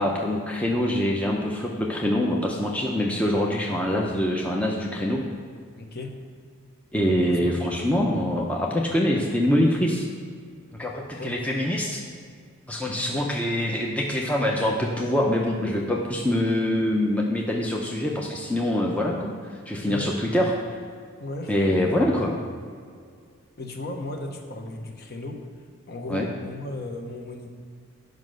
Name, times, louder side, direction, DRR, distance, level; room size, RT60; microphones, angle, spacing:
voice 1, 0.0-5.2 6.9-10.1 10.8-12.0 12.7-19.3 19.7-20.5 21.5-22.3 26.1-26.3, left 1 dB, 5° left, -2 dB, 0.6 m, -24 dB
voice 2, 5.8-6.1 7.3-7.5 8.0-8.1 8.9-9.0 11.2-11.4 12.9-13.3 19.8-20.1 21.2-21.5 23.6-25.4 25.9-27.5, left 2 dB, 45° left, 3 dB, 1.0 m, -35 dB
9.5 x 5.3 x 6.3 m, 2.2 s
head